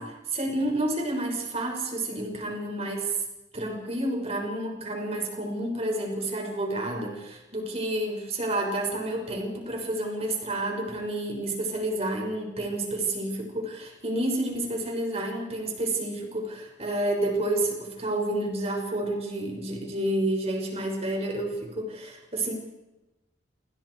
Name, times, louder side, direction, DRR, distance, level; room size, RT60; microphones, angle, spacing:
voice 1, 0.0-3.2 3.5-22.5, right 1 dB, 35° right, 2 dB, 6.1 m, -30 dB
28.5 x 28.5 x 4.8 m, 1.0 s
head